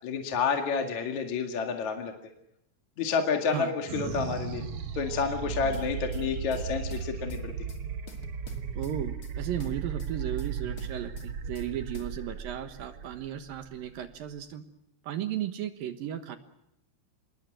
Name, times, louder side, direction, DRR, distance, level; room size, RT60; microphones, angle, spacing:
voice 1, 0.0-2.1 3.0-4.6 4.9-7.5, left 5 dB, 50° left, 4 dB, 3.0 m, -29 dB
sound 1, 3.9-14.5, right 7 dB, 90° right, 1.2 m, -36 dB
sound 2, 5.7-6.6 6.9-7.8 8.1-9.3 9.6-10.5 10.8-11.7 11.9-12.1, left 3 dB, 30° left, 1.7 m, -49 dB
voice 2, 8.7-14.6 15.0-16.4, right 10 dB, 65° right, 9 dB, 2.7 m, -35 dB
27.0 x 21.0 x 7.8 m, 0.82 s
omnidirectional pair, 4.8 m